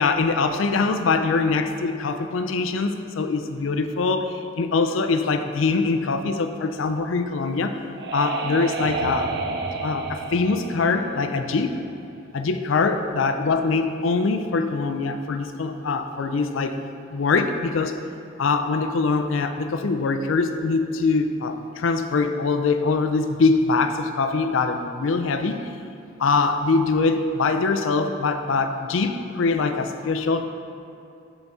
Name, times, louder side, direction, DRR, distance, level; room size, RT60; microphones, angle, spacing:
voice 1, 0.0-7.7 8.1-9.3 9.8-11.8 12.3-16.8 17.1-18.0 18.4-25.6 26.2-30.4, left 4 dB, 80° left, 8 dB, 0.4 m, -23 dB
sound 1, 7.4-12.0, right 3 dB, 55° right, 0.5 m, -31 dB
11.0 x 4.0 x 3.6 m, 2.6 s
head